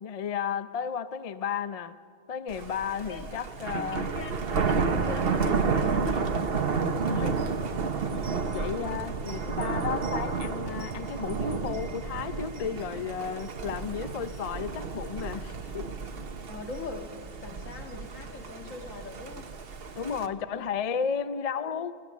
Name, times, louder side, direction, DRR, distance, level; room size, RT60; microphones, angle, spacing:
voice 1, 0.0-2.0 2.3-4.1 7.1-7.4 8.1-8.2 8.5-15.9 20.0-22.0, left 7 dB, 40° left, 13 dB, 0.5 m, -33 dB
Thunder, 2.5-20.3, right 5 dB, 50° right, 1.2 m, -31 dB
voice 2, 3.9-6.4 16.5-17.1 17.4-19.5 20.3-20.6, left 4 dB, 80° left, 4 dB, 2.2 m, -41 dB
30.0 x 15.0 x 7.3 m, 2.2 s
omnidirectional pair, 1.3 m